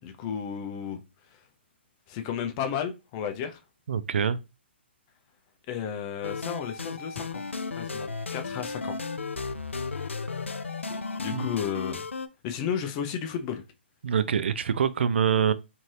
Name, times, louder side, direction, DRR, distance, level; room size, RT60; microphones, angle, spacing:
voice 1, 0.0-1.0 1.3-1.4 2.1-3.6 5.7-7.5 7.7-9.0 9.7-9.8 10.9-12.1 12.4-13.6, left 8 dB, 30° left, 0.4 m, -33 dB
voice 2, 3.9-4.4 11.3-11.5 14.0-15.5, right 7 dB, 65° right, 0.4 m, -25 dB
sound 1, 6.2-12.3, left 4 dB, 90° left, 0.4 m, -34 dB
2.7 x 2.6 x 3.1 m
figure-of-eight pair, 135°, 6 cm